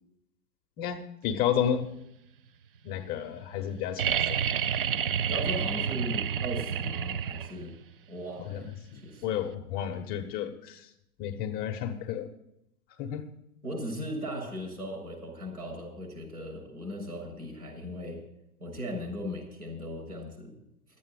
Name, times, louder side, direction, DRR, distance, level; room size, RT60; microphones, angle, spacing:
voice 1, 0.8-2.0 2.8-4.4 5.3-5.4 8.5-10.9 11.2-12.3 13.0-13.3, left 9 dB, 20° left, 5 dB, 0.8 m, -32 dB
sound 1, 4.0-7.8 9.5-9.6, right 8 dB, 40° right, 0.4 m, -29 dB
voice 2, 5.3-7.7 8.1-8.7 9.0-9.3 13.6-18.2 18.6-20.6, equal, 80° right, 0 dB, 6.8 m, -37 dB
12.5 x 8.4 x 8.0 m, 0.81 s
figure-of-eight pair, 110°, 45 cm